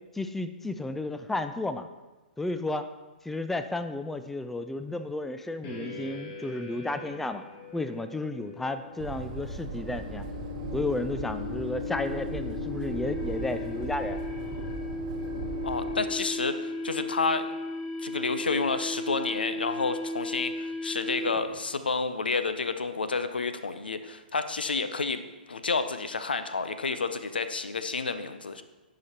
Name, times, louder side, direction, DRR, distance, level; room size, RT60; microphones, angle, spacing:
voice 1, 0.1-1.9 2.4-2.9 3.2-7.4 7.7-10.2 10.7-14.2, left 2 dB, 5° left, 10 dB, 0.3 m, -32 dB
sound 1, 5.6-21.6, left 2 dB, 40° left, 1.5 m, -36 dB
sound 2, 9.0-16.0, right 4 dB, 50° right, 0.9 m, -38 dB
voice 2, 15.6-17.5 18.0-25.2 25.5-28.6, left 4 dB, 85° left, 10 dB, 0.5 m, -30 dB
11.0 x 4.9 x 2.9 m, 1.2 s
hypercardioid pair, 120°, 5 cm